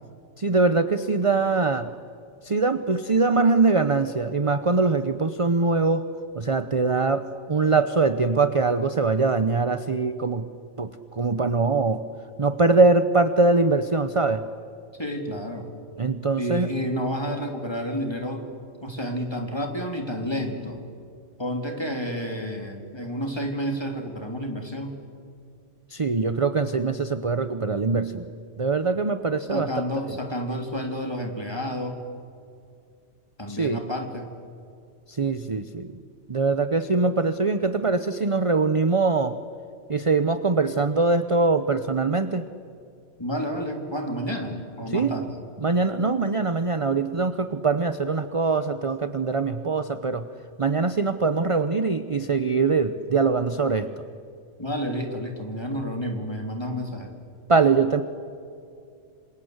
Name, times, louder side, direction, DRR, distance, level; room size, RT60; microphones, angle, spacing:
voice 1, 0.4-1.9 2.4-6.0 6.3-10.5 10.8-12.0 12.4-14.5 16.0-16.7 25.9-28.3 28.6-29.7 30.1-30.2 33.5-33.9 35.1-35.9 36.3-39.4 39.9-42.4 44.9-45.2 45.6-50.3 50.6-53.9 57.5-58.0, right 3 dB, 30° right, 11 dB, 0.8 m, -22 dB
voice 2, 15.0-15.7 16.4-18.5 18.8-20.8 21.4-25.0 29.5-32.0 33.4-34.3 43.2-45.4 54.6-57.1, equal, 20° left, 3 dB, 3.5 m, -30 dB
27.0 x 27.0 x 8.1 m, 2.4 s
omnidirectional pair, 1.2 m